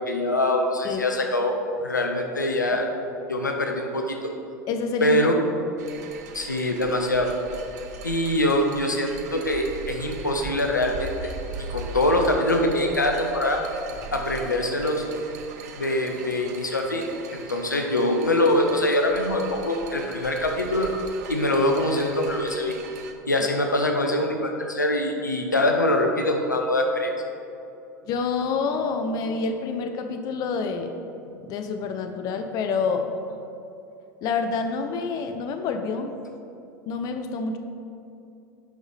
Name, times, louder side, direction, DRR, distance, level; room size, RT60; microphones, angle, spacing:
voice 1, 0.0-1.5 1.8-2.9 3.3-4.3 5.0-5.4 6.3-7.3 8.0-11.1 11.7-13.6 14.1-15.0 15.8-17.1 17.3-20.9 21.3-22.7 23.3-27.1, left 1 dB, 90° left, 3 dB, 0.7 m, -23 dB
voice 2, 4.7-5.2 28.1-31.0 31.4-33.1 34.2-36.2 36.9-37.6, left 4 dB, 40° left, 6 dB, 0.6 m, -27 dB
sound 1, 5.8-23.1, right 5 dB, 65° right, 0.7 m, -40 dB
8.2 x 5.6 x 3.3 m, 2.7 s
figure-of-eight pair, 80°, 10 cm